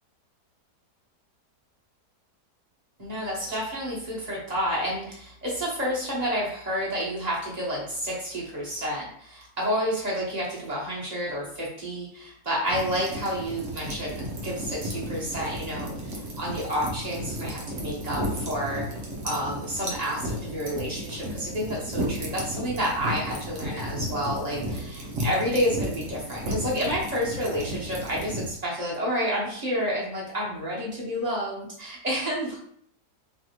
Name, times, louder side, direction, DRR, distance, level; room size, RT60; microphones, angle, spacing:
voice 1, 3.0-15.9 16.4-18.8 19.2-32.6, equal, 25° right, -5 dB, 1.3 m, -30 dB
sound 1, 12.7-28.5, equal, 55° right, 1.1 m, -34 dB
3.7 x 3.3 x 3.1 m, 0.65 s
omnidirectional pair, 1.8 m